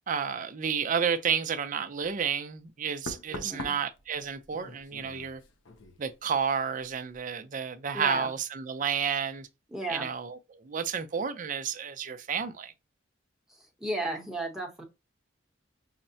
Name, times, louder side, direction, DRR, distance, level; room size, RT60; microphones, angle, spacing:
voice 1, 0.1-5.4 6.0-9.5 9.9-12.7, right 7 dB, 45° right, 0.5 m, -31 dB
Knock, 2.0-2.2 3.1-6.5 6.8-7.2, left 2 dB, 80° left, 0.6 m, -45 dB
voice 2, 3.3-3.7 7.9-8.3 9.7-10.1 13.8-14.8, right 1 dB, ahead, 0.9 m, -34 dB
5.7 x 2.1 x 2.6 m
head